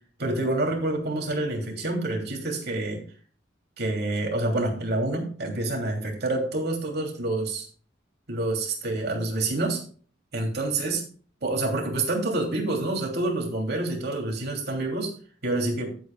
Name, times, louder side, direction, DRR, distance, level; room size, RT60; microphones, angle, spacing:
voice 1, 0.2-3.0 3.8-7.7 8.3-9.8 10.3-11.0 11.4-15.1 15.4-15.9, right 2 dB, 60° right, 1 dB, 3.0 m, -27 dB
15.0 x 8.3 x 2.4 m, 0.43 s
head